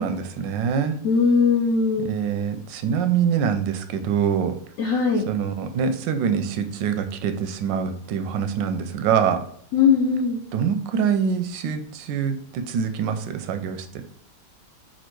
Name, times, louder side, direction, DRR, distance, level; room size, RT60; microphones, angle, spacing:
voice 1, 0.0-1.0 2.0-4.5 5.3-9.4 10.5-14.0, right 7 dB, 85° right, 9 dB, 1.2 m, -24 dB
voice 2, 1.0-2.1 4.8-5.3 9.7-10.4, left 5 dB, 70° left, 1 dB, 0.8 m, -20 dB
4.3 x 2.4 x 4.4 m, 0.65 s
omnidirectional pair, 1.9 m